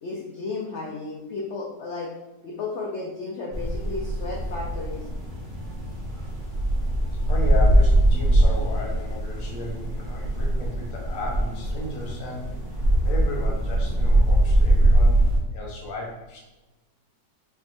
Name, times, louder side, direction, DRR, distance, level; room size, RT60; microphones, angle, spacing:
voice 1, 0.0-2.1 2.4-5.1, left 3 dB, 90° left, -3 dB, 0.6 m, -33 dB
sound 1, 3.5-15.4, right 1 dB, 30° right, 1.1 m, -22 dB
voice 2, 7.2-12.5 13.0-16.4, left 2 dB, 60° left, -2 dB, 1.1 m, -34 dB
4.3 x 2.8 x 2.5 m, 1.1 s
omnidirectional pair, 1.8 m